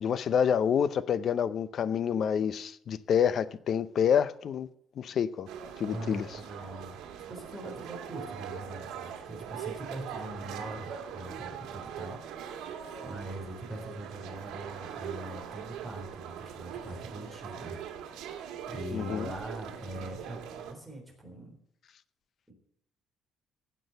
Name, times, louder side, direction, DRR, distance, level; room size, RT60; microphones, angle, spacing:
voice 1, 0.0-4.7 5.0-5.5 5.8-6.3 18.9-19.3, left 8 dB, 45° left, 0.5 m, -27 dB
sound 1, 5.5-20.7, right 8 dB, 85° right, 1.8 m, -41 dB
voice 2, 5.8-7.0 7.3-12.8 13.0-17.8 18.7-21.5 22.5-22.6, right 1 dB, 5° right, 3.8 m, -42 dB
16.0 x 6.1 x 7.9 m
cardioid pair, 150°, 0 cm